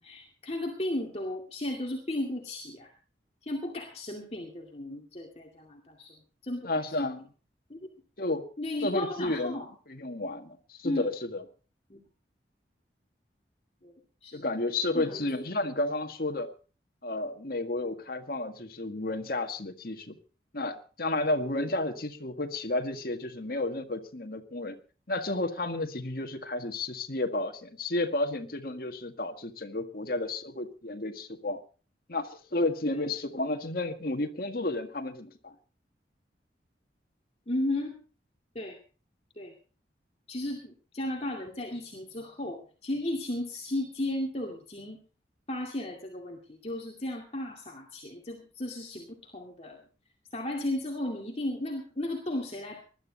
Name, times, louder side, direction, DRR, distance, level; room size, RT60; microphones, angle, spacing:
voice 1, 0.0-2.9 3.4-6.2 6.4-7.1 7.7-7.9 8.6-9.7 10.8-11.1 11.9-12.0 13.8-14.0 14.2-14.4 14.9-15.2 32.9-33.0 37.5-38.0 38.5-38.8 39.4-39.5 40.3-45.0 45.5-49.8 50.3-52.8, left 1 dB, 35° left, 0 dB, 2.3 m, -35 dB
voice 2, 6.6-7.3 8.2-8.4 8.8-11.4 14.3-16.5 17.0-20.2 20.5-24.8 25.1-31.6 32.1-35.5, left 2 dB, 55° left, 5 dB, 1.8 m, -32 dB
20.0 x 12.5 x 4.0 m, 0.37 s
head